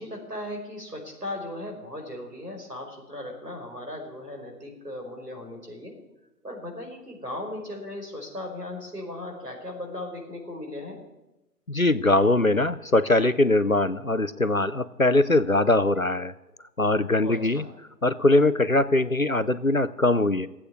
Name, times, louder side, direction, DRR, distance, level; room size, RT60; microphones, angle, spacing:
voice 1, 0.0-5.9 6.4-11.0 17.2-17.7, left 1 dB, 70° right, 1 dB, 5.3 m, -37 dB
voice 2, 11.7-16.3 16.8-17.6 18.0-20.5, left 2 dB, 55° left, 14 dB, 0.6 m, -22 dB
15.0 x 8.6 x 9.6 m, 0.98 s
figure-of-eight pair, 175°, 50 cm